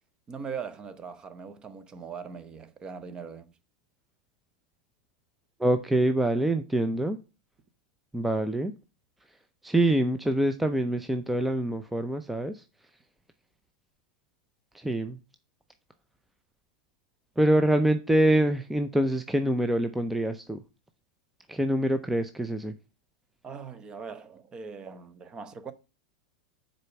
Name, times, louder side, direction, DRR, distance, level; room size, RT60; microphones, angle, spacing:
voice 1, 0.3-3.5 23.4-25.7, right 6 dB, 25° right, 0.9 m, -40 dB
voice 2, 5.6-7.2 8.1-8.7 9.6-12.6 14.7-15.2 17.4-20.6 21.5-22.7, right 1 dB, 5° right, 0.5 m, -25 dB
6.6 x 4.2 x 5.8 m
hypercardioid pair, 110°, 3 cm